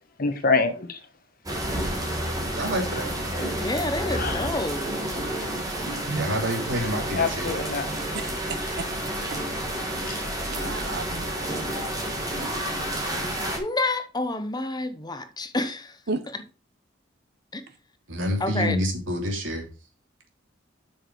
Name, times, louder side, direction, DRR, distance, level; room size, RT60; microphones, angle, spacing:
voice 1, 0.2-1.0 3.4-3.5 4.2-4.5 7.2-7.9 10.1-10.2, left 4 dB, 50° left, 1.3 m, -26 dB
sound 1, 1.5-13.6, right 1 dB, 20° right, 2.2 m, -30 dB
voice 2, 2.6-3.1 6.1-7.5 18.1-19.6, equal, 80° right, 2.8 m, -27 dB
voice 3, 3.5-4.9 13.6-16.0 17.5-17.6 18.4-18.8, left 2 dB, 20° left, 0.9 m, -28 dB
voice 4, 8.1-8.9 10.5-12.1 16.1-16.2, right 3 dB, 60° right, 0.9 m, -34 dB
7.7 x 6.2 x 4.6 m
head